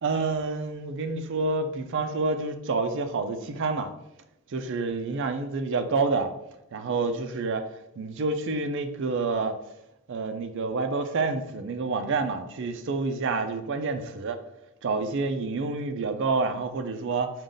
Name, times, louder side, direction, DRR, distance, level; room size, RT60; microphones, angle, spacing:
voice 1, 0.0-3.9 4.5-6.3 6.7-9.6 10.1-14.4 14.8-17.3, right 3 dB, 60° right, 0.4 m, -28 dB
5.0 x 2.4 x 3.8 m
head